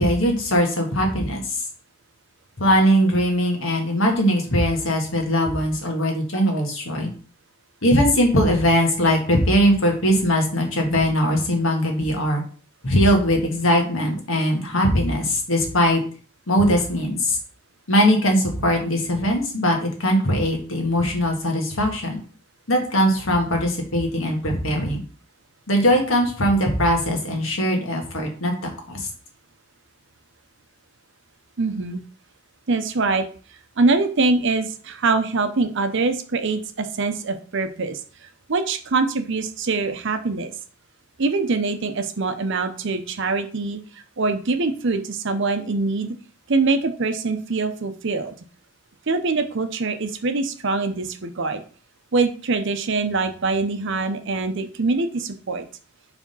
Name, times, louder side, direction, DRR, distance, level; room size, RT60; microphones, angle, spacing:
voice 1, 0.0-1.6 2.6-7.1 7.8-12.4 12.8-16.0 16.5-17.4 17.9-22.2 22.7-25.0 25.7-28.5 28.9-29.1, equal, 75° left, 1 dB, 1.6 m, -20 dB
voice 2, 31.6-32.0 32.7-33.2 33.8-38.0 38.5-40.5 41.2-43.8 44.2-46.1 46.5-48.3 49.1-51.6 52.1-55.7, right 3 dB, 65° right, 8 dB, 0.7 m, -23 dB
4.9 x 3.5 x 5.4 m, 0.41 s
head